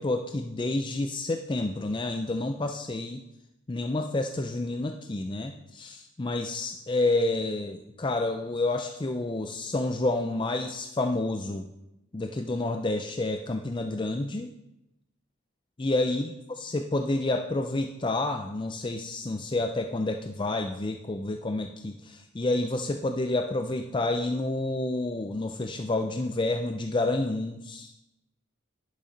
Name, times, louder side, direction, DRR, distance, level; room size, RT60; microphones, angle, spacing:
voice 1, 0.0-3.2 3.7-11.6 12.1-14.5 15.8-27.9, left 2 dB, 25° left, 5 dB, 0.4 m, -29 dB
10.5 x 7.1 x 5.1 m, 0.89 s
head